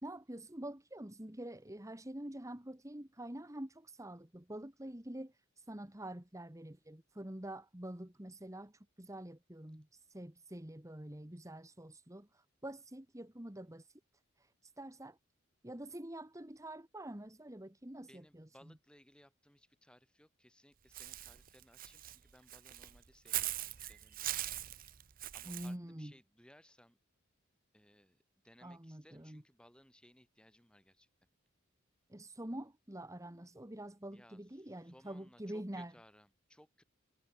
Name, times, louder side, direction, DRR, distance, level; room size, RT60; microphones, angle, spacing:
voice 1, 0.0-14.0 14.4-15.2 15.6-18.7 25.4-26.1 28.6-29.4 32.1-35.9, right 1 dB, 15° right, 1.6 m, -47 dB
voice 2, 18.0-24.4 25.3-27.0 27.7-31.1 34.1-36.8, equal, 5° left, 6.1 m, -63 dB
Walk footsteps / Bird, 20.9-25.7, right 14 dB, 45° right, 0.7 m, -41 dB
head